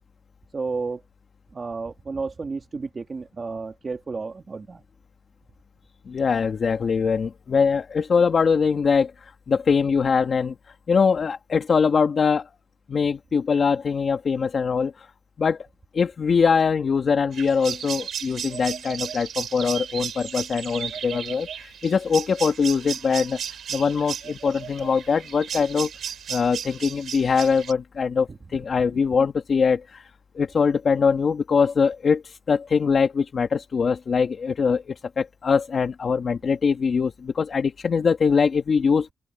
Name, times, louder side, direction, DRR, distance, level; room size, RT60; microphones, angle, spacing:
voice 1, 0.5-1.0 1.5-4.8 28.3-28.4, right 4 dB, 35° right, 2.5 m, -32 dB
voice 2, 6.1-10.6 10.9-12.5 12.9-15.1 15.4-15.7 15.9-23.4 23.7-25.9 26.3-30.1 30.3-39.1, left 5 dB, 50° left, 2.0 m, -22 dB
sound 1, 17.3-27.7, right 8 dB, 75° right, 6.5 m, -34 dB
open air
cardioid pair, 110°, 0 cm